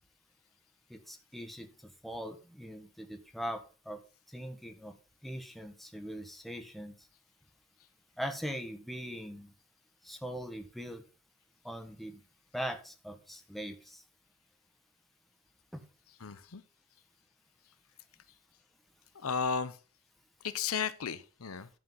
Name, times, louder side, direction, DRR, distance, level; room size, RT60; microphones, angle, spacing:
voice 1, 0.9-1.7 2.0-4.0 4.3-4.9 5.2-6.9 8.2-9.5 10.0-11.0 11.6-12.2 12.5-14.0 15.7-15.8, equal, ahead, 1.2 m, -41 dB
voice 2, 16.2-16.6 19.1-19.8 20.4-21.7, left 6 dB, 85° left, 0.8 m, -34 dB
11.0 x 5.1 x 5.5 m
head